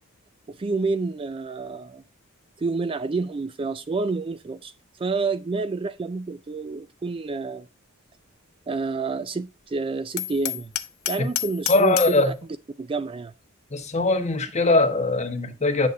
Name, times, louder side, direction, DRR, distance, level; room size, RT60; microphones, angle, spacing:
voice 1, 0.5-2.0 2.6-4.7 5.0-7.7 8.7-10.7 11.1-12.3 12.8-13.3, right 4 dB, 25° right, 0.3 m, -28 dB
Hammer, 10.2-12.3, left 14 dB, 85° left, 0.8 m, -30 dB
voice 2, 11.7-12.3 13.7-15.9, left 2 dB, 30° left, 1.3 m, -21 dB
9.4 x 6.6 x 2.7 m
head